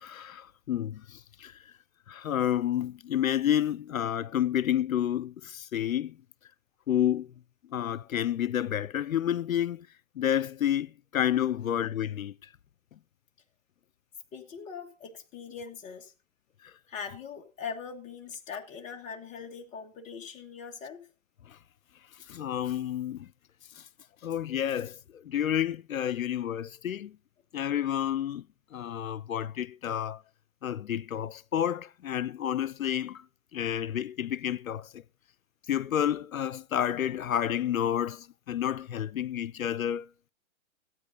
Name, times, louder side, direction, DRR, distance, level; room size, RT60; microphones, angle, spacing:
voice 1, 0.0-1.7 2.1-6.2 6.9-7.3 7.7-9.9 10.2-12.5 16.6-16.7 21.5-21.6 22.3-23.3 23.7-23.9 24.2-27.2 27.5-28.5 28.7-30.2 30.6-33.3 33.5-35.0 35.7-40.1, left 10 dB, 90° left, 0.6 m, -30 dB
voice 2, 14.3-16.1 16.9-21.1, left 6 dB, 20° left, 1.4 m, -41 dB
15.5 x 8.9 x 3.9 m
hypercardioid pair, 135°, 40 cm